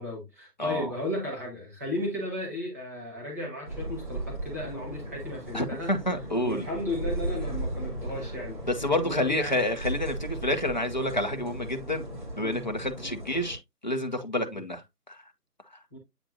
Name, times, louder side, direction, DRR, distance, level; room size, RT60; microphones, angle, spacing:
voice 1, 0.0-5.9 6.4-8.6 9.0-9.6 12.4-12.6 13.0-13.2 14.4-14.6 15.9-16.0, left 1 dB, 10° right, 1.5 m, -35 dB
voice 2, 0.6-0.9 5.5-6.7 8.7-12.0 12.4-15.2, left 1 dB, 30° left, 0.8 m, -29 dB
sound 1, 3.6-13.6, right 1 dB, 30° right, 2.1 m, -36 dB
8.9 x 4.3 x 2.6 m
figure-of-eight pair, 160°, 48 cm